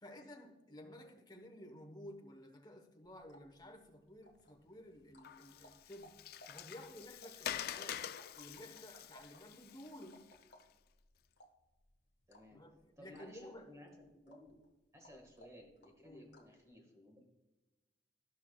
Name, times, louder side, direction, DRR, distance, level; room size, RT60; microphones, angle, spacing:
voice 1, 0.0-6.2 6.5-8.1 8.3-10.4 12.5-13.8 16.0-16.2, left 1 dB, 25° left, 0.9 m, -54 dB
sound 1, 3.0-16.6, equal, 75° left, 1.2 m, -65 dB
Water, 5.2-10.6, left 10 dB, 55° left, 0.3 m, -46 dB
voice 2, 12.3-12.6 13.0-14.5 14.9-17.3, left 1 dB, 15° right, 1.4 m, -57 dB
14.0 x 5.8 x 2.2 m
head